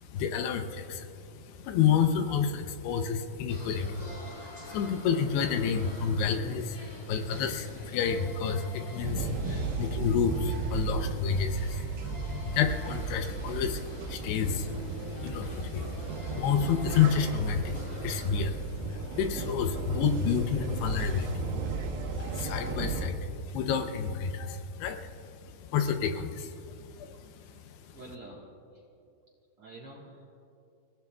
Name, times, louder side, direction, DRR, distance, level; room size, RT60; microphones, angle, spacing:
voice 1, 0.0-28.0, left 6 dB, 80° left, 6 dB, 2.8 m, -30 dB
sound 1, 3.5-18.3, left 1 dB, 40° left, 0.6 m, -46 dB
sound 2, 9.0-23.1, right 4 dB, 70° right, 2.7 m, -35 dB
voice 2, 27.9-28.4 28.7-28.8 29.6-30.4, right 2 dB, 55° right, -2 dB, 1.7 m, -47 dB
29.5 x 16.5 x 2.3 m, 2.5 s
omnidirectional pair, 4.7 m